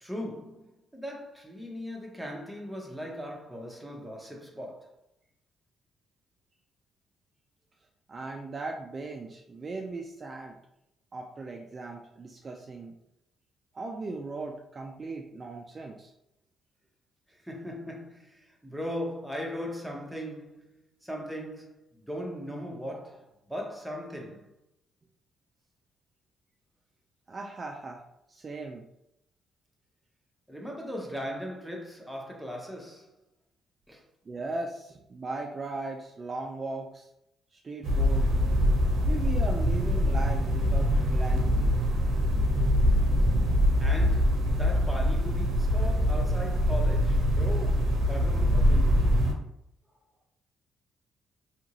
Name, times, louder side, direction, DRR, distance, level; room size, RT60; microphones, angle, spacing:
voice 1, 0.0-4.9 17.3-24.5 30.5-33.1 33.9-34.0 38.8-39.4 43.8-49.2, equal, ahead, 0.8 m, -39 dB
voice 2, 8.1-10.6 11.1-12.9 13.7-16.1 27.3-28.0 28.3-28.8 34.3-37.1 37.5-38.3 39.0-41.8, right 3 dB, 35° right, 0.3 m, -38 dB
sound 1, 37.8-49.3, equal, 75° right, 0.6 m, -24 dB
2.8 x 2.5 x 2.9 m
cardioid pair, 90°, 0 cm